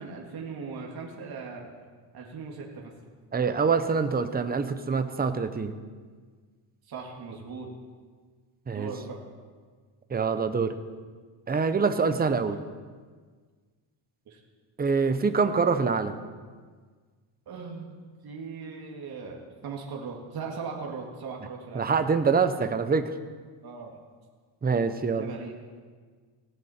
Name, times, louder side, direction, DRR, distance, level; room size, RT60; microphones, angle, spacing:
voice 1, 0.0-1.7 2.1-2.9 6.9-7.7 8.7-9.2 14.3-14.4 17.5-18.0 18.2-21.9 23.6-23.9 25.2-25.5, right 5 dB, 50° right, -1 dB, 2.2 m, -39 dB
voice 2, 3.3-5.7 8.7-8.9 10.1-10.7 11.5-12.6 14.8-16.2 21.7-23.1 24.6-25.3, right 5 dB, 20° right, 9 dB, 0.8 m, -25 dB
17.5 x 16.5 x 4.4 m, 1.5 s
cardioid pair, 160°, 48 cm